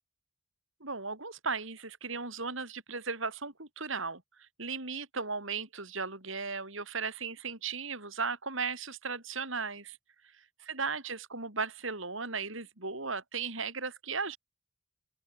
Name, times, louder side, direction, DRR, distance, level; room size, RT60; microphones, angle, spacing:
voice 1, 0.8-10.0 10.7-14.4, right 4 dB, 65° right, 6.1 m, -36 dB
open air
head